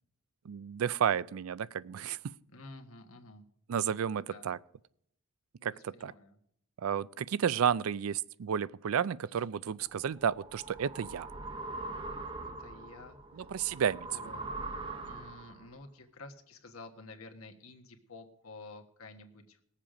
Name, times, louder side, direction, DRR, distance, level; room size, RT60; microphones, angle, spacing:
voice 1, 0.5-2.3 3.7-4.6 5.6-6.1 6.8-11.3 13.4-14.1, right 8 dB, 80° right, 0.4 m, -32 dB
voice 2, 2.5-3.4 4.3-4.5 5.6-6.4 12.4-13.5 13.7-13.8 14.1-14.5 15.0-19.6, left 2 dB, 85° left, 1.5 m, -51 dB
sound 1, 9.9-15.7, right 2 dB, 25° right, 0.8 m, -42 dB
20.0 x 7.4 x 5.0 m
head